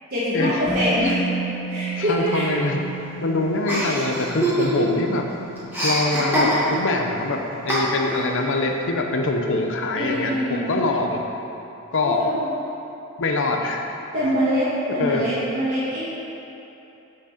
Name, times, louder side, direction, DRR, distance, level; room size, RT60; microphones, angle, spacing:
voice 1, 0.1-1.2 1.7-2.5 9.9-10.7 12.0-12.5 14.1-16.2, equal, 45° right, -11 dB, 1.5 m, -24 dB
Musical instrument, 0.7-8.6 8.8-9.0, right 3 dB, 15° left, 1.1 m, -34 dB
voice 2, 2.0-2.8 3.2-5.3 5.8-11.2 11.9-12.2 13.2-13.8 15.0-15.3, left 2 dB, 60° left, 3 dB, 0.7 m, -24 dB
Chuckle chortle, 3.7-5.0 5.3-7.0 7.7-8.3, equal, 10° right, 1.7 m, -23 dB
7.8 x 6.1 x 4.2 m, 2.9 s
head